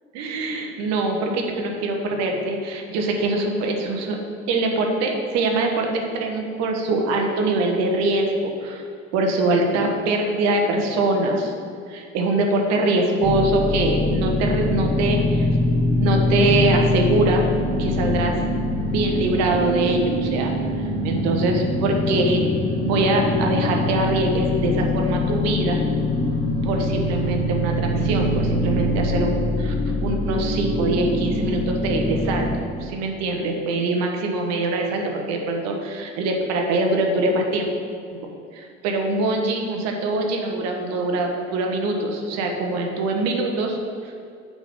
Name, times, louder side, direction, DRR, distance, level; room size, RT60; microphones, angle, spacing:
voice 1, 0.1-4.2 4.5-8.8 9.1-11.5 11.9-15.5 16.0-17.5 17.8-18.4 18.9-20.5 20.8-22.5 22.8-25.8 26.6-29.7 30.0-32.5 32.8-37.7 38.1-38.3 38.5-43.8 44.0-44.1, right 2 dB, 50° right, 2 dB, 1.3 m, -23 dB
sound 1, 13.2-32.6, left 1 dB, 15° left, 1.5 m, -23 dB
8.4 x 4.0 x 5.2 m, 2.3 s
figure-of-eight pair, 65°, 35 cm